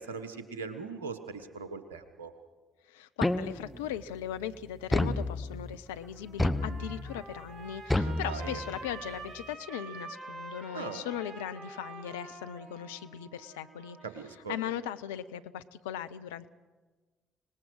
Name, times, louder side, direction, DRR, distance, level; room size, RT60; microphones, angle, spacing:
voice 1, 0.0-2.3 8.0-8.6 10.7-11.0 14.0-14.6, right 5 dB, 90° right, 10 dB, 1.3 m, -40 dB
voice 2, 2.9-14.0 14.5-16.5, left 10 dB, 85° left, 12 dB, 0.6 m, -38 dB
sound 1, 3.2-3.9 4.9-5.8 6.4-7.2 7.9-8.9, left 2 dB, 15° left, 1.3 m, -30 dB
Trumpet, 5.9-14.3, right 3 dB, 40° right, 4.6 m, -47 dB
25.0 x 19.5 x 6.3 m, 1.3 s
hypercardioid pair, 45°, 0 cm